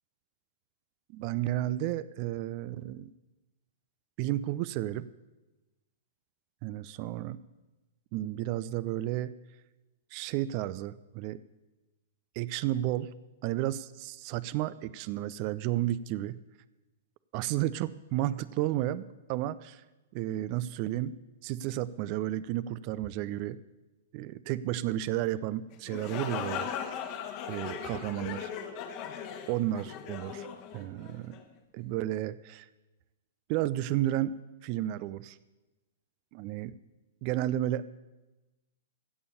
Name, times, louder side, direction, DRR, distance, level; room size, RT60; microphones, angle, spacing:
voice 1, 1.1-3.1 4.2-5.1 6.6-7.4 8.1-9.3 10.1-11.4 12.4-13.1 13.4-16.4 17.3-19.8 20.1-21.1 21.4-23.6 24.1-26.7 27.5-28.5 29.5-30.5 30.7-31.4 31.7-32.7 33.5-34.3 34.6-35.4 36.3-36.7 37.2-38.0, right 14 dB, 40° right, 16 dB, 0.5 m, -32 dB
sound 1, 25.7-31.4, left 8 dB, 40° left, 1.4 m, -38 dB
16.0 x 7.0 x 6.8 m, 1.1 s
figure-of-eight pair, 105°, 0 cm